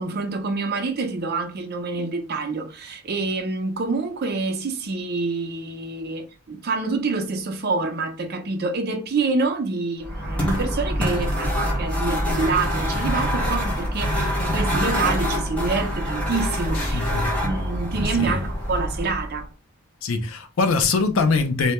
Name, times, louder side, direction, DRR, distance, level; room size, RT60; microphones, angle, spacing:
voice 1, 0.0-17.0 17.4-19.5, right 3 dB, 45° right, 0.4 m, -27 dB
sound 1, 10.0-19.4, equal, 5° left, 0.6 m, -25 dB
voice 2, 16.8-17.3 18.1-18.4 20.0-21.7, left 4 dB, 60° left, 0.4 m, -22 dB
2.1 x 2.1 x 2.8 m
head